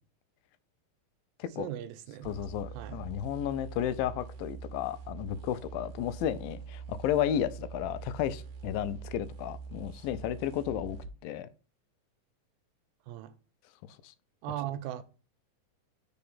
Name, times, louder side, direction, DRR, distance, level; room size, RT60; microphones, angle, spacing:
voice 1, 1.6-2.4 2.7-3.0 13.1-13.4 14.4-15.0, right 12 dB, 85° right, 2.4 m, -38 dB
sound 1, 2.2-11.1, right 6 dB, 65° right, 1.5 m, -44 dB
voice 2, 2.3-11.0 11.2-11.5 14.0-14.1, left 10 dB, 90° left, 2.3 m, -33 dB
4.9 x 4.3 x 5.4 m
omnidirectional pair, 4.1 m